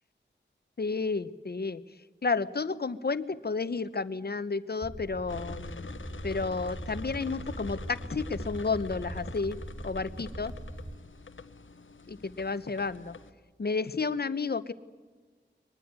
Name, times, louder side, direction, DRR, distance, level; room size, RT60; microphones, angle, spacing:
voice 1, 0.8-1.8 2.2-5.9 6.2-9.6 9.8-10.5 12.1-13.2 13.6-14.7, left 4 dB, 55° left, 14 dB, 0.9 m, -31 dB
sound 1, 4.8-11.0, right 1 dB, 20° right, 0.8 m, -41 dB
sound 2, 5.3-13.3, left 4 dB, 85° left, 1.0 m, -46 dB
23.0 x 19.5 x 9.5 m, 1.4 s
wide cardioid pair, 75°, 20 cm